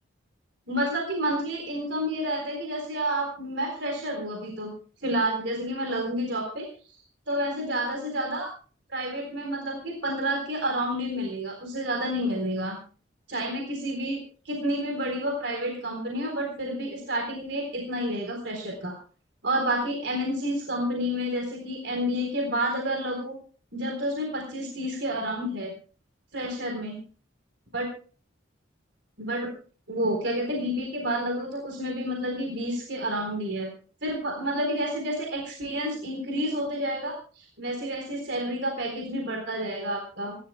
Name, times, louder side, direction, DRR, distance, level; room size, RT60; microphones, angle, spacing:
voice 1, 0.7-4.7 5.0-6.7 7.3-8.5 8.9-12.8 13.3-14.2 14.4-18.9 19.4-23.4 23.7-25.7 26.3-27.0 27.7-27.9 29.2-29.5 29.9-33.7 34.0-40.4, equal, 60° right, 2 dB, 3.9 m, -29 dB
27.5 x 13.0 x 2.2 m, 0.40 s
head